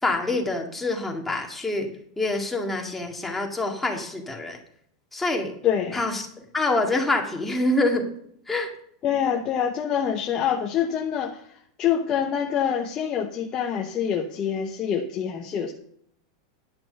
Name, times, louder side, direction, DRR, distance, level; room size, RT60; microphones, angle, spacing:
voice 1, 0.0-1.9 2.2-4.6 5.1-5.5 5.9-8.1 8.5-8.7, left 2 dB, 5° left, 1 dB, 2.0 m, -26 dB
voice 2, 5.6-6.0 9.0-15.7, left 8 dB, 30° left, 2 dB, 0.9 m, -26 dB
10.5 x 6.1 x 6.7 m, 0.66 s
supercardioid pair, 140°, 2 cm